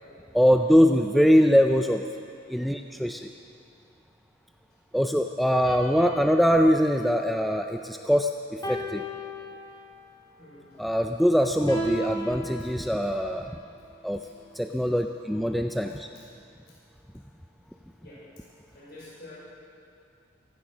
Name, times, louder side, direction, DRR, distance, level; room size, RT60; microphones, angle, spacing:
voice 1, 0.3-2.0 2.5-3.3 4.9-9.1 10.8-13.6 14.0-14.2 14.6-16.1, equal, ahead, 4 dB, 0.3 m, -22 dB
sound 1, 5.6-8.1 8.6-10.1 11.7-13.4, right 1 dB, 20° left, 2.2 m, -36 dB
voice 2, 10.4-10.7 14.6-14.8 15.9-16.2 16.7-16.8 18.0-18.2 18.7-19.3, left 2 dB, 50° left, -8 dB, 5.1 m, -49 dB
15.5 x 14.5 x 6.1 m, 2.5 s
head